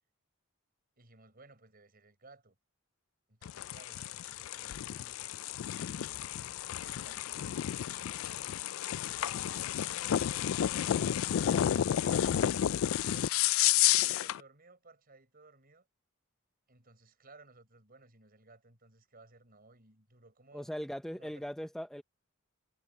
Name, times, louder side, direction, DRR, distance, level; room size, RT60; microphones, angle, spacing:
voice 1, 1.0-2.6 3.3-5.2 6.1-7.7 8.9-10.8 11.3-12.2 12.8-13.7 14.0-15.9 16.7-20.7 21.1-21.5, right 3 dB, 45° right, 6.6 m, -59 dB
sound 1, 3.4-14.4, left 11 dB, 75° left, 0.3 m, -31 dB
voice 2, 20.5-22.0, equal, ahead, 0.6 m, -39 dB
head